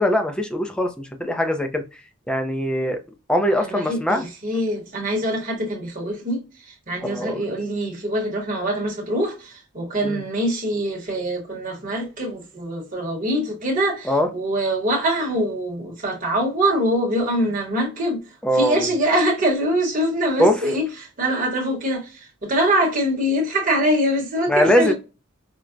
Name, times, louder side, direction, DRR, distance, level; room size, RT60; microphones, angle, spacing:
voice 1, 0.0-1.8 2.3-3.0 3.3-4.2 7.0-7.4 10.0-10.2 14.1-14.3 18.4-18.9 20.4-20.5 24.5-24.9, equal, 5° left, 0.4 m, -21 dB
voice 2, 3.5-6.4 6.7-18.2 18.5-24.9, equal, 40° right, 0.9 m, -24 dB
4.4 x 2.0 x 2.4 m
head